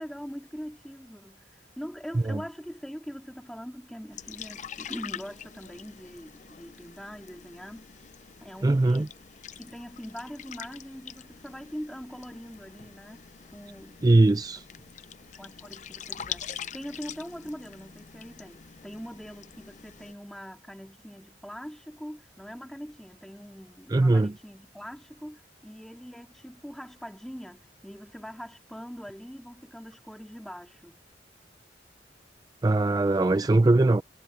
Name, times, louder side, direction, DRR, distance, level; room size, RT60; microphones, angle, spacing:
voice 1, 0.0-7.9 8.4-9.1 9.6-14.0 15.3-31.0, equal, 5° left, 2.6 m, -42 dB
sound 1, 4.1-20.1, left 8 dB, 45° left, 0.5 m, -44 dB
voice 2, 8.6-9.1 14.0-14.7 23.9-24.3 32.6-34.0, right 2 dB, 20° right, 0.4 m, -21 dB
head